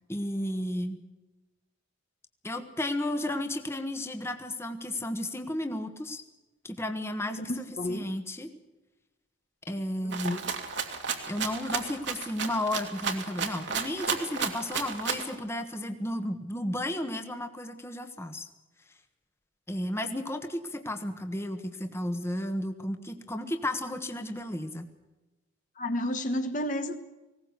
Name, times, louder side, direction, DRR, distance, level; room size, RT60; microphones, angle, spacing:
voice 1, 0.1-1.0 2.4-6.2 6.6-8.5 9.7-10.4 11.3-18.5 19.7-24.9, left 1 dB, 15° left, 7 dB, 1.3 m, -33 dB
voice 2, 7.3-8.1 10.0-10.5 25.8-27.0, left 1 dB, 40° left, 7 dB, 1.2 m, -32 dB
Rattle (instrument), 10.1-15.3, right 6 dB, 60° right, 2.4 m, -33 dB
19.5 x 17.5 x 8.2 m, 1.1 s
head